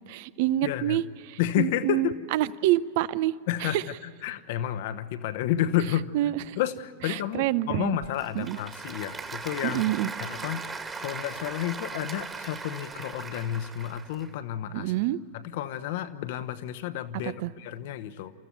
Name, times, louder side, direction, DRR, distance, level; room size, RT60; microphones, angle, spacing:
voice 1, 0.1-3.3 3.6-3.8 6.1-6.6 7.1-8.0 8.3-8.6 9.6-10.1 14.7-15.2 17.2-17.5, right 14 dB, 50° right, 19 dB, 0.6 m, -27 dB
voice 2, 0.6-1.0 1.4-2.1 3.5-3.8 4.2-6.1 6.6-9.8 10.2-14.9 15.4-18.3, left 11 dB, 50° left, 10 dB, 1.1 m, -31 dB
Applause / Crowd, 7.8-14.3, right 4 dB, 20° right, 1.9 m, -38 dB
28.5 x 14.5 x 9.2 m, 2.2 s
figure-of-eight pair, 90°, 0 cm